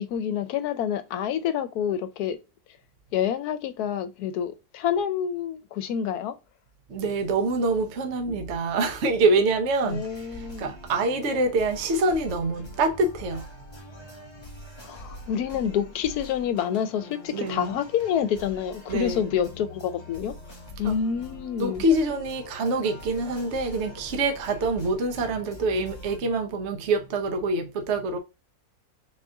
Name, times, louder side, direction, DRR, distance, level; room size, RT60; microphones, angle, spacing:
voice 1, 0.0-2.4 3.1-6.4 9.8-10.7 14.8-20.4 20.8-21.8, left 8 dB, 80° left, 1.2 m, -28 dB
voice 2, 6.9-13.5 17.3-17.8 18.9-19.3 20.8-20.9 21.6-28.2, right 2 dB, 55° right, 0.9 m, -25 dB
sound 1, 9.9-26.2, left 1 dB, 20° left, 1.1 m, -44 dB
4.2 x 2.4 x 3.4 m
omnidirectional pair, 1.6 m